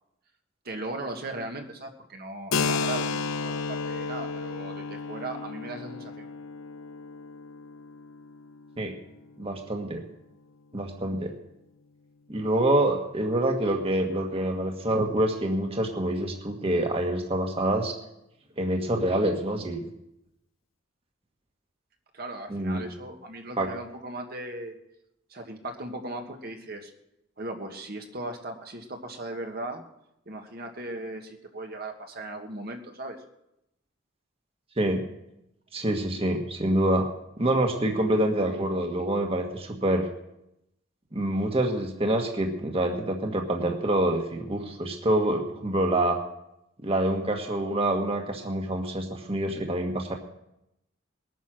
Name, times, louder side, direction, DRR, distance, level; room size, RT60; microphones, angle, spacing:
voice 1, 0.7-6.3 22.1-24.7 25.3-26.9 27.4-29.8 30.3-33.2, right 2 dB, 50° right, 3 dB, 1.6 m, -38 dB
Keyboard (musical), 2.5-9.9, left 4 dB, 85° left, 0.7 m, -33 dB
voice 2, 9.4-10.0 10.7-11.3 12.3-17.9 18.6-19.8 22.5-22.9 23.6-23.7 34.8-35.0 35.7-37.1 37.4-40.1 41.1-46.2 46.8-50.1, right 1 dB, 30° right, 2 dB, 1.5 m, -26 dB
20.5 x 9.4 x 6.3 m, 0.85 s
head